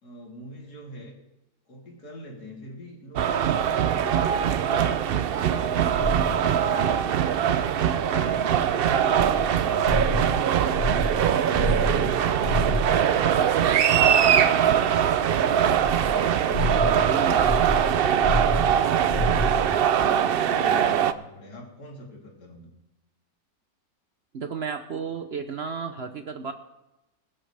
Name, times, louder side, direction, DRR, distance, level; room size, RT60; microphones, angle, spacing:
voice 1, 0.0-1.2 1.7-6.8 7.3-9.1 9.4-12.5 14.0-15.3 15.9-19.5 19.9-22.7, left 1 dB, 80° left, -2 dB, 3.8 m, -43 dB
sound 1, 3.2-21.1, right 9 dB, 85° right, 0.5 m, -22 dB
sound 2, 5.9-6.5 9.1-13.2 15.8-19.7, equal, 45° left, 6.0 m, -29 dB
voice 2, 8.1-8.7 17.0-17.5 24.3-26.5, right 5 dB, 50° right, 8 dB, 0.8 m, -33 dB
21.0 x 11.5 x 3.4 m, 0.95 s
omnidirectional pair, 1.7 m